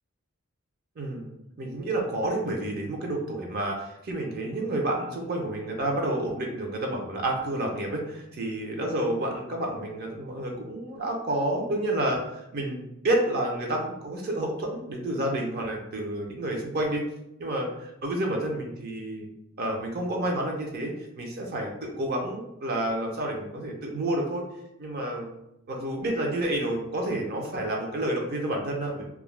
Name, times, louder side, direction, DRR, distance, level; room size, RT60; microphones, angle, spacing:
voice 1, 1.0-1.3 1.6-17.1 17.4-19.3 19.6-24.4 24.8-25.3 25.7-29.1, right 1 dB, 50° right, 1 dB, 0.5 m, -29 dB
2.3 x 2.0 x 3.1 m, 0.84 s
head